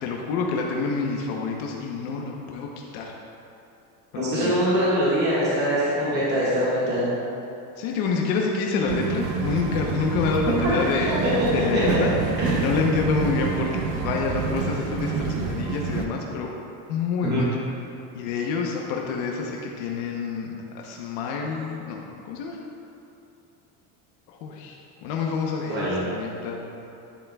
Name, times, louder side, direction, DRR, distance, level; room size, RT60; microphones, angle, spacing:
voice 1, 0.0-2.7 2.9-3.1 4.4-4.5 7.8-11.1 11.5-12.1 12.6-16.5 16.9-17.5 18.1-20.5 20.7-22.6 24.3-26.6, left 5 dB, 75° left, -1 dB, 1.0 m, -27 dB
voice 2, 4.1-7.1 11.7-12.0 12.4-12.5 17.2-17.4 25.7-26.0, equal, 25° right, -10 dB, 1.7 m, -23 dB
sound 1, 8.9-16.0, right 6 dB, 65° right, 0.8 m, -28 dB
10.5 x 7.4 x 2.3 m, 2.7 s
cardioid pair, 180°, 41 cm